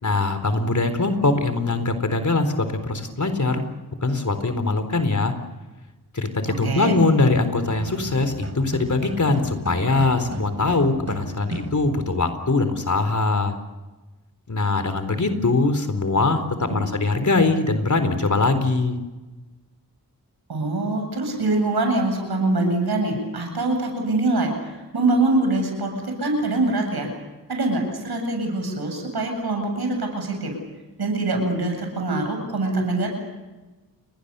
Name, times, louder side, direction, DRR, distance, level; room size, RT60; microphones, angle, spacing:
voice 1, 0.0-3.6 4.0-5.3 6.1-13.5 14.5-19.0, left 3 dB, 50° left, 9 dB, 4.1 m, -22 dB
voice 2, 6.6-6.9 16.7-17.0 20.5-27.1 27.5-30.6 31.0-33.1, right 2 dB, 85° right, 4 dB, 8.0 m, -24 dB
sound 1, 7.6-12.2, right 2 dB, 40° right, 7.3 m, -35 dB
29.0 x 22.0 x 7.0 m, 1.2 s
cardioid pair, 50°, 37 cm